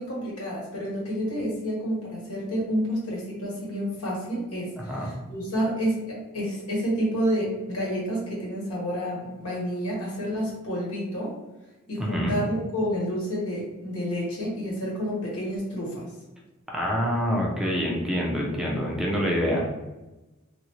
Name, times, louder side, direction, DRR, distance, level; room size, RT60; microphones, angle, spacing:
voice 1, 0.0-11.3 11.9-16.1, equal, 80° left, -4 dB, 1.3 m, -29 dB
voice 2, 4.8-5.1 12.0-12.4 16.7-19.7, equal, ahead, -3 dB, 0.4 m, -26 dB
3.1 x 2.5 x 3.0 m, 1.1 s
head